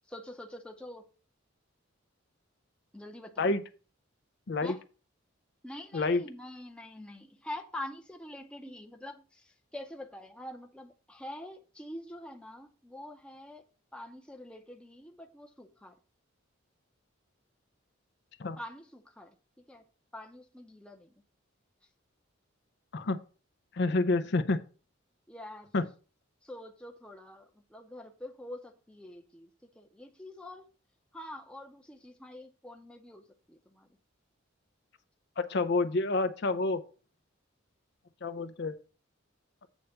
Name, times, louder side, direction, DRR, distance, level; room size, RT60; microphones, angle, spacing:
voice 1, 0.1-1.1 2.9-3.5 4.6-4.8 5.6-13.6 13.9-16.0 18.6-19.8 20.1-21.1 25.3-25.7 26.4-29.5 29.8-30.6 31.1-33.9, left 1 dB, 5° left, 0.7 m, -45 dB
voice 2, 23.7-24.6 25.7-25.8 35.4-36.8 38.2-38.7, left 3 dB, 55° left, 0.5 m, -28 dB
8.2 x 3.4 x 6.5 m
head